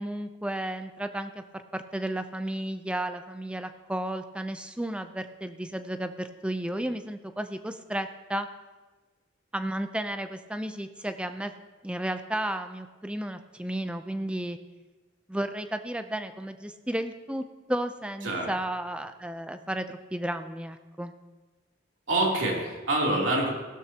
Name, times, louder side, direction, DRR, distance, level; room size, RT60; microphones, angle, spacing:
voice 1, 0.0-1.4 1.7-8.5 9.5-11.5 11.8-14.6 15.3-17.4 17.7-21.1, right 1 dB, 5° right, 9 dB, 0.5 m, -33 dB
voice 2, 22.1-23.5, right 2 dB, 80° right, -2 dB, 3.0 m, -26 dB
15.5 x 12.5 x 2.9 m, 1.3 s
head